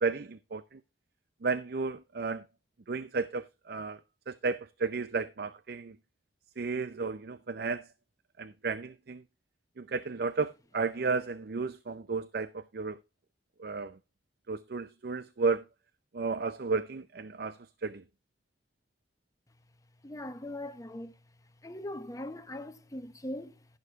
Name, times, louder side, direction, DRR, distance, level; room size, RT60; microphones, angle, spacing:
voice 1, 0.0-0.8 1.4-2.5 2.9-4.0 4.3-6.0 6.6-7.9 8.4-9.2 9.8-13.0 13.6-14.0 14.5-15.6 16.1-18.0, right 4 dB, 60° right, 0.5 m, -33 dB
voice 2, 20.0-21.1 21.6-23.7, left 1 dB, 20° left, 0.8 m, -40 dB
12.0 x 11.0 x 2.4 m
head